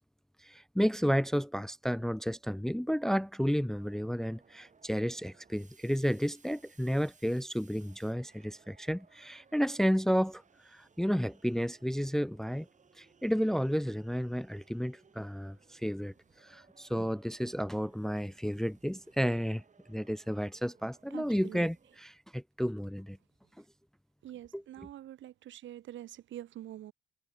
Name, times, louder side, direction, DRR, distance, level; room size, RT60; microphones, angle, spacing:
voice 1, 0.4-10.4 10.7-12.7 13.0-16.1 16.4-19.6 19.9-23.2 24.5-24.6, equal, ahead, 0.5 m, -32 dB
sound 1, 3.8-22.0, right 5 dB, 40° right, 5.2 m, -64 dB
voice 2, 21.1-21.7 24.2-26.9, right 12 dB, 70° right, 1.2 m, -46 dB
cardioid pair, 90°, 20 cm